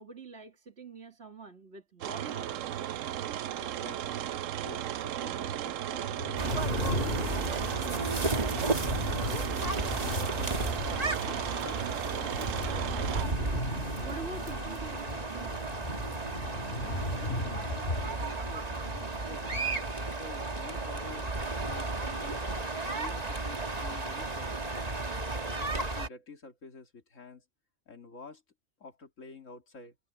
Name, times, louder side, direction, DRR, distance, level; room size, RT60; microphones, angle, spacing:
voice 1, 0.0-2.7 14.0-15.6, right 4 dB, 55° right, 2.4 m, -45 dB
sound 1, 2.0-13.3, right 11 dB, 75° right, 1.0 m, -35 dB
voice 2, 3.6-4.3 4.6-8.7 9.2-9.8 10.0-10.7 11.1-13.1 16.8-19.7 20.1-21.3 21.6-25.0 25.5-27.4 27.9-28.4 28.8-30.0, left 3 dB, 70° left, 2.7 m, -49 dB
sound 2, 6.1-11.4 11.7-20.3 20.6-21.3, left 1 dB, 45° left, 2.2 m, -38 dB
sound 3, 6.4-26.1, right 2 dB, 30° right, 1.7 m, -34 dB
omnidirectional pair, 1.4 m